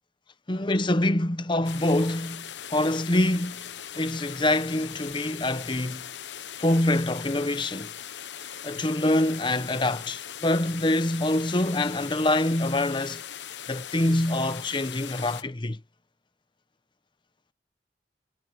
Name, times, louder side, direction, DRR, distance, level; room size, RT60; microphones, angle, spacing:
voice 1, 0.5-3.6 3.9-6.0 6.6-7.9 8.6-13.2 13.7-15.8, left 1 dB, 25° left, 1.0 m, -25 dB
sound 1, 1.6-15.4, left 9 dB, 90° left, 0.9 m, -40 dB
head